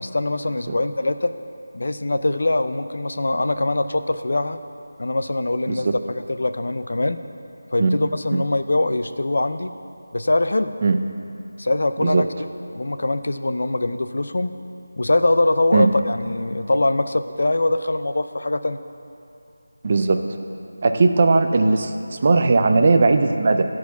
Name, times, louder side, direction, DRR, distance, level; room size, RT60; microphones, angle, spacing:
voice 1, 0.0-1.3 1.7-4.6 5.0-7.2 7.7-9.7 10.1-10.7 11.6-12.3 12.7-14.6 15.0-18.8, left 2 dB, 65° left, 10 dB, 0.4 m, -22 dB
voice 2, 19.8-20.2 20.8-23.7, right 3 dB, 35° right, 7 dB, 0.4 m, -18 dB
9.2 x 4.7 x 6.7 m, 2.7 s
figure-of-eight pair, 170°, 0 cm